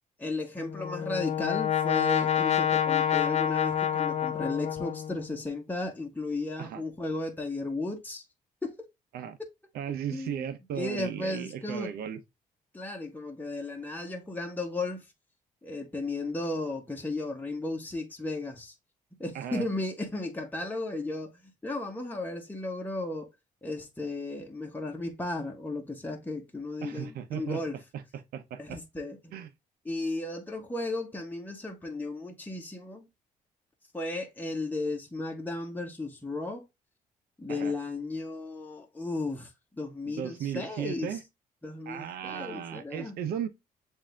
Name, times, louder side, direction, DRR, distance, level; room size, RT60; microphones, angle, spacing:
voice 1, 0.2-8.2 8.6-8.8 10.1-10.5 10.7-11.9 12.7-15.1 15.6-18.7 19.2-23.3 23.6-27.8 28.6-29.5 29.8-33.1 33.9-36.6 37.4-41.2 41.6-43.1, left 2 dB, 10° left, 1.3 m, -35 dB
Brass instrument, 0.6-5.4, left 9 dB, 45° left, 0.5 m, -28 dB
voice 2, 9.7-12.2 19.3-19.7 26.8-27.6 28.1-28.8 29.3-29.5 37.5-37.7 40.1-41.2 41.9-43.5, right 9 dB, 75° right, 0.7 m, -36 dB
7.3 x 2.7 x 2.3 m
supercardioid pair, 70°, 16 cm